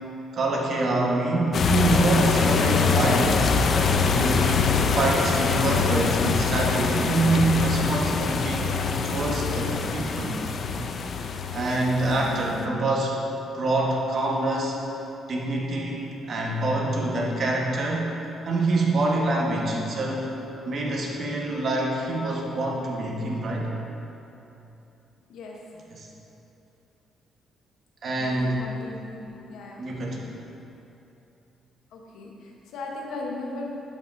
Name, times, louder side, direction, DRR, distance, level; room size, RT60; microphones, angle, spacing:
voice 1, 0.3-3.5 4.1-10.4 11.5-13.2 13.5-15.0 15.3-18.1 18.4-20.3 20.6-23.7 25.9-26.1 28.0-28.6 29.8-30.3, right 2 dB, 55° right, -2 dB, 1.3 m, -26 dB
sound 1, 1.5-12.6, left 5 dB, 55° left, 0.5 m, -24 dB
voice 2, 25.3-25.6 28.2-29.8 31.9-33.7, left 2 dB, 85° left, -1 dB, 1.0 m, -37 dB
11.5 x 5.4 x 2.7 m, 2.9 s
cardioid pair, 90°, 0 cm